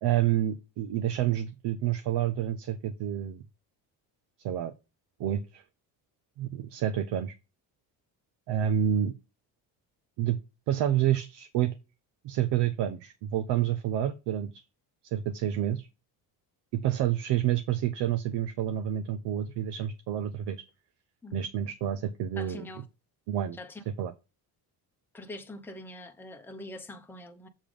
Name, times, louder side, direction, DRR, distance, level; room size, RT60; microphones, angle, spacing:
voice 1, 0.0-3.4 4.4-4.7 5.2-5.6 6.4-7.3 8.5-9.1 10.2-10.4 10.7-11.7 12.2-14.6 15.1-15.9 16.7-20.6 21.3-22.7 23.3-23.6 23.9-24.1, right 11 dB, 75° right, 0.8 m, -28 dB
voice 2, 22.4-22.8 23.5-23.8 25.1-27.5, left 1 dB, 5° left, 0.9 m, -43 dB
7.4 x 3.4 x 5.0 m
cardioid pair, 115°, 42 cm